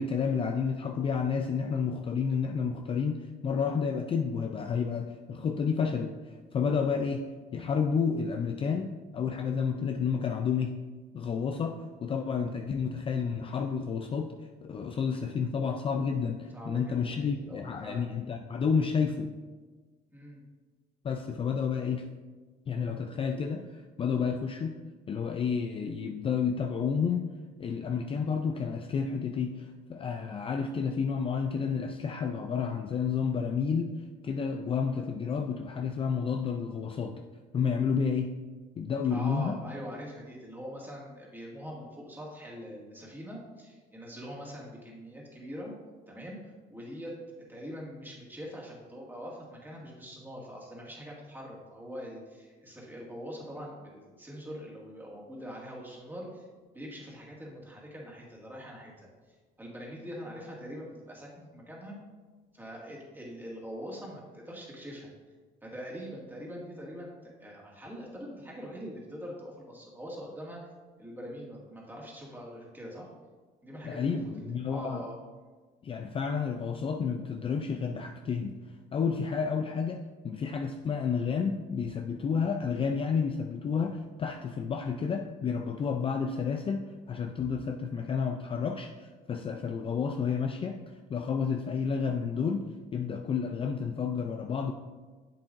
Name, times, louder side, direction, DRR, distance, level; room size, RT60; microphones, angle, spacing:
voice 1, 0.0-10.8 11.1-14.3 14.6-19.3 21.0-22.1 22.7-24.8 25.1-27.3 27.6-33.9 34.2-37.2 37.5-38.3 38.8-39.5 73.8-75.0 75.8-78.5 78.9-90.8 91.1-92.6 92.9-94.7, left 6 dB, 35° left, 5 dB, 0.4 m, -30 dB
voice 2, 16.5-18.1 20.1-20.4 39.1-45.8 46.1-47.1 47.5-56.5 56.7-62.0 62.5-65.1 65.6-70.7 71.0-73.1 73.6-75.2, equal, 10° right, -3 dB, 2.0 m, -43 dB
7.5 x 7.3 x 2.6 m, 1.4 s
cardioid pair, 110°, 17 cm